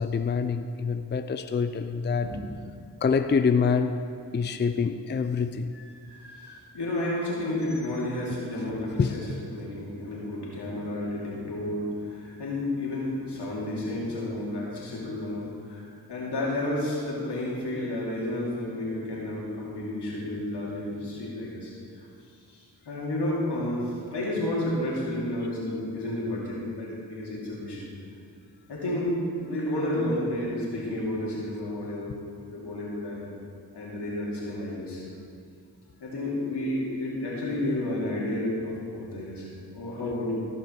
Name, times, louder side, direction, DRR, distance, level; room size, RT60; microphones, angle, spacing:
voice 1, 0.0-2.3 3.0-4.0 4.3-5.7 9.0-9.1, left 5 dB, 25° left, 10 dB, 0.5 m, -25 dB
voice 2, 5.7-22.0 22.5-27.9 28.7-32.2 32.5-33.3 33.7-35.0 36.0-39.5 39.7-40.3, left 1 dB, 80° left, -5 dB, 2.7 m, -31 dB
15.0 x 5.5 x 4.6 m, 2.3 s
cardioid pair, 40°, 40 cm